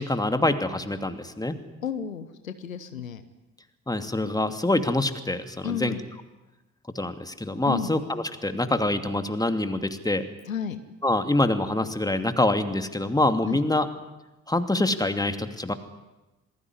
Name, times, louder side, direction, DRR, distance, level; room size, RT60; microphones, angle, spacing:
voice 1, 0.0-1.6 3.9-5.9 6.9-10.2 11.0-13.9 14.5-15.7, left 2 dB, 10° left, 8 dB, 2.7 m, -25 dB
voice 2, 1.8-3.2 5.6-6.0 7.6-7.9 10.5-10.8 13.4-13.6, left 8 dB, 85° left, 11 dB, 1.1 m, -32 dB
27.0 x 19.0 x 9.9 m, 1.1 s
figure-of-eight pair, 45°, 40 cm